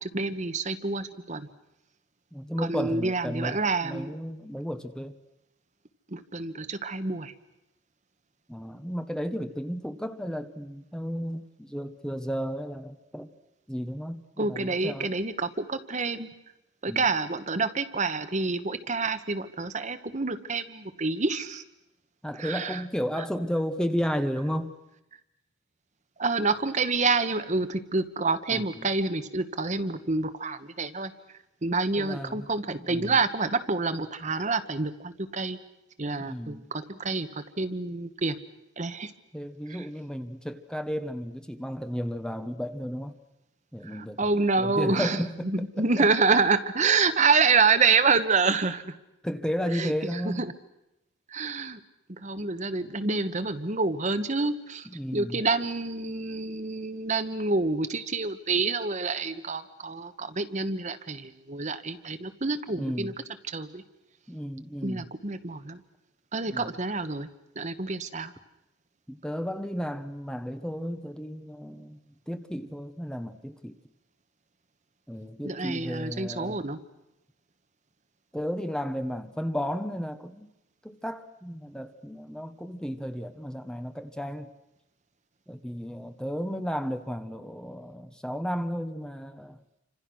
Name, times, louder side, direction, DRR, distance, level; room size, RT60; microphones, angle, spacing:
voice 1, 0.0-1.5 2.6-4.1 6.1-7.3 14.4-16.3 16.8-21.6 22.4-22.8 26.2-31.1 31.6-35.6 36.0-38.4 38.8-39.1 39.7-39.8 43.8-49.0 49.7-50.5 51.3-51.8 52.1-63.1 63.5-63.8 64.8-65.8 66.3-67.3 67.5-68.3 75.4-76.8, right 4 dB, 40° right, 10 dB, 1.2 m, -27 dB
voice 2, 2.3-5.2 8.5-13.3 13.7-15.1 16.9-17.1 22.2-24.7 28.5-28.9 32.0-32.5 32.8-33.1 36.2-36.7 39.3-43.2 43.7-46.1 49.2-50.4 54.8-55.4 62.7-63.1 64.3-65.1 66.5-66.7 69.1-72.0 72.3-73.7 75.1-76.6 78.3-80.5 80.8-84.5 85.5-89.6, equal, 5° left, 9 dB, 1.1 m, -33 dB
29.5 x 26.0 x 6.3 m, 0.90 s
head